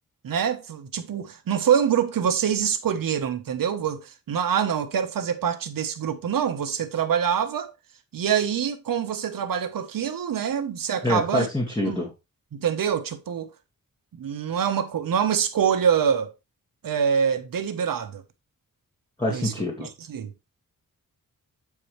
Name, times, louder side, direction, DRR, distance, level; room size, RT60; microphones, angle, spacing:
voice 1, 0.2-7.7 8.1-11.5 11.9-12.0 12.5-13.5 14.1-16.3 16.8-18.2 19.3-19.5 20.1-20.3, right 8 dB, 80° right, 1.0 m, -25 dB
voice 2, 11.0-12.1 19.2-19.9, left 1 dB, 10° left, 1.9 m, -26 dB
8.2 x 4.9 x 3.2 m
wide cardioid pair, 115°, 33 cm